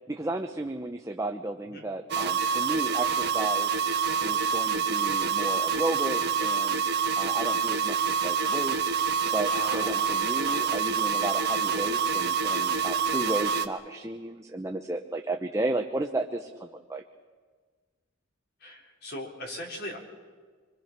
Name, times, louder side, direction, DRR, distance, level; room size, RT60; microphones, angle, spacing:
voice 1, 0.1-3.8 4.2-6.8 7.2-9.0 9.3-17.0, right 2 dB, 15° right, 4 dB, 0.9 m, -33 dB
sound 1, 2.1-13.7, right 6 dB, 55° right, 1.4 m, -27 dB
voice 2, 9.5-10.2 18.6-20.0, left 1 dB, 50° left, 1 dB, 4.1 m, -38 dB
26.0 x 24.0 x 6.1 m, 1.5 s
head